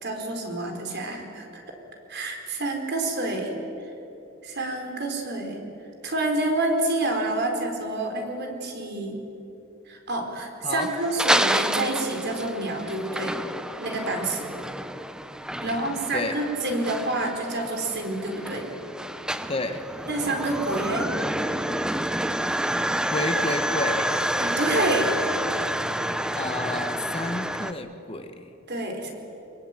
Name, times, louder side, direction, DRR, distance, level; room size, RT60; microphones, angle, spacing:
voice 1, 0.0-1.6 2.1-3.6 4.4-5.6 6.0-9.2 9.9-13.4 13.8-14.5 15.6-18.7 20.1-21.1 24.4-25.1 28.7-29.1, right 2 dB, 50° right, 3 dB, 4.4 m, -28 dB
sound 1, 10.8-27.7, right 1 dB, 5° right, 0.7 m, -29 dB
voice 2, 15.5-16.3 19.5-19.8 23.1-24.1 26.3-28.5, left 2 dB, 25° left, 7 dB, 1.2 m, -31 dB
25.0 x 22.5 x 9.1 m, 2.9 s
head